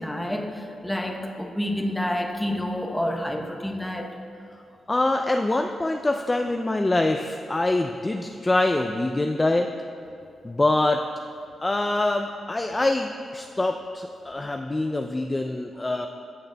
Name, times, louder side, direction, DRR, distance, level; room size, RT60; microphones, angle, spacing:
voice 1, 0.0-4.1, left 1 dB, 5° left, 3 dB, 0.8 m, -29 dB
voice 2, 4.9-9.7 10.4-11.0 11.6-16.1, left 2 dB, 20° left, 4 dB, 0.3 m, -24 dB
14.0 x 6.5 x 2.2 m, 2.6 s
cardioid pair, 90°, 0 cm